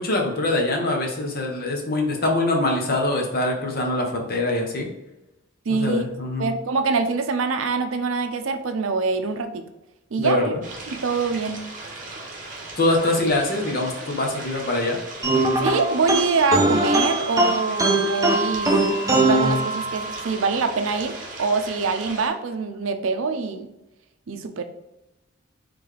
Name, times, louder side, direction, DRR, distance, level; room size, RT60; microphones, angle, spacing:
voice 1, 0.0-4.9 5.7-6.5 10.2-10.6 12.8-15.0, left 2 dB, 50° left, 2 dB, 0.9 m, -23 dB
voice 2, 5.7-6.1 6.4-9.7 10.1-10.5 10.9-11.6 15.6-18.8 19.1-23.7 24.3-24.6, right 4 dB, 75° right, 8 dB, 0.5 m, -24 dB
sound 1, 10.6-22.3, right 2 dB, 40° right, 0.8 m, -38 dB
sound 2, 15.2-20.3, right 2 dB, 15° right, 0.5 m, -21 dB
3.9 x 3.3 x 3.3 m, 0.96 s
head